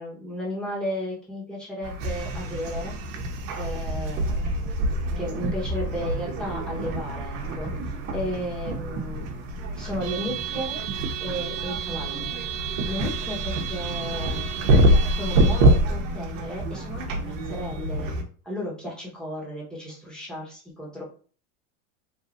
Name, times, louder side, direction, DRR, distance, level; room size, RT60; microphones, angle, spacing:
voice 1, 0.0-2.9 3.6-4.6 5.2-9.4 9.8-10.8 11.2-12.3 12.9-14.6 15.1-18.1 18.4-21.0, equal, ahead, -5 dB, 1.1 m, -34 dB
sound 1, 1.8-18.2, right 1 dB, 65° right, 0.8 m, -26 dB
3.1 x 2.6 x 2.5 m, 0.41 s
supercardioid pair, 125°, 41 cm